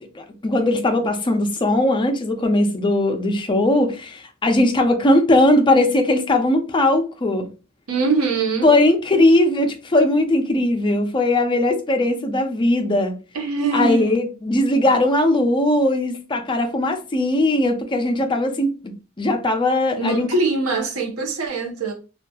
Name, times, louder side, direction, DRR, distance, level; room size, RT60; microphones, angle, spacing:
voice 1, 0.2-7.5 8.6-13.1 13.7-18.7 19.2-20.3, left 1 dB, 20° left, 0.4 m, -19 dB
voice 2, 7.9-8.7 13.3-14.3 20.0-21.9, right 3 dB, 75° right, 0.7 m, -23 dB
2.7 x 2.3 x 2.2 m
head